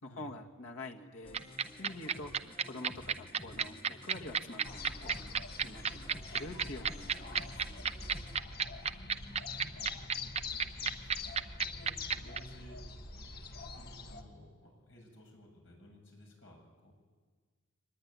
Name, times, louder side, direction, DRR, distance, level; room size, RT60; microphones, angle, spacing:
voice 1, 0.0-1.4 1.8-5.4 5.6-7.6, left 2 dB, 85° left, 1 dB, 1.9 m, -46 dB
sound 1, 1.2-8.4, left 1 dB, 25° left, 1.5 m, -52 dB
sound 2, 1.3-12.4, right 7 dB, 30° right, 0.7 m, -31 dB
sound 3, 4.6-14.2, left 3 dB, 50° left, 1.7 m, -45 dB
voice 2, 8.5-12.8 13.7-16.9, left 1 dB, 65° left, 1 dB, 7.7 m, -57 dB
24.0 x 20.0 x 9.7 m, 1.5 s
head